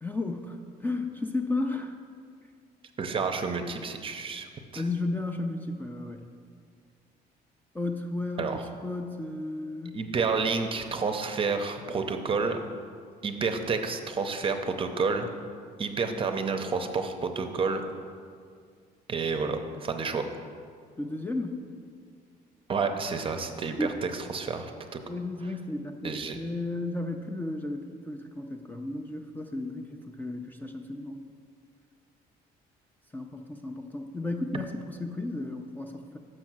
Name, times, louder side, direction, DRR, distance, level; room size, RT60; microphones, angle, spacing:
voice 1, 0.0-1.9 4.8-6.2 7.7-10.0 21.0-21.6 23.8-23.9 25.1-31.2 33.1-36.2, left 2 dB, 10° left, 4 dB, 0.4 m, -33 dB
voice 2, 3.0-4.8 8.4-8.6 9.9-12.6 13.2-15.3 15.8-17.8 19.1-20.3 22.7-25.0 26.0-26.4, right 4 dB, 30° right, 6 dB, 0.6 m, -30 dB
6.3 x 5.3 x 6.0 m, 2.1 s
cardioid pair, 110°, 17 cm